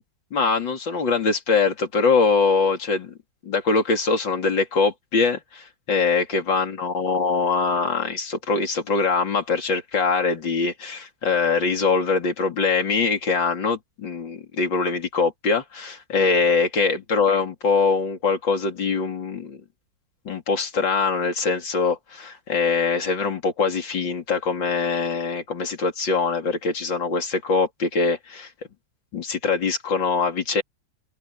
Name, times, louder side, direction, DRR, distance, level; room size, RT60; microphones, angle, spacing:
voice 1, 0.3-3.1 3.4-19.6 20.3-28.5 29.1-30.6, left 4 dB, 75° left, 3.7 m, -23 dB
omnidirectional pair, 2.0 m